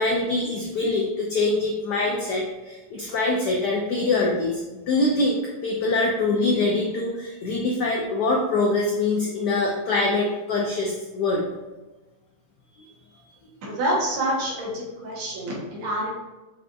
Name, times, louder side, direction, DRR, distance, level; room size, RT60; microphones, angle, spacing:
voice 1, 0.0-11.4, left 2 dB, 85° left, -1 dB, 0.9 m, -24 dB
voice 2, 13.6-16.1, right 1 dB, 80° right, -3 dB, 1.9 m, -27 dB
5.4 x 2.6 x 2.3 m, 1.1 s
omnidirectional pair, 2.3 m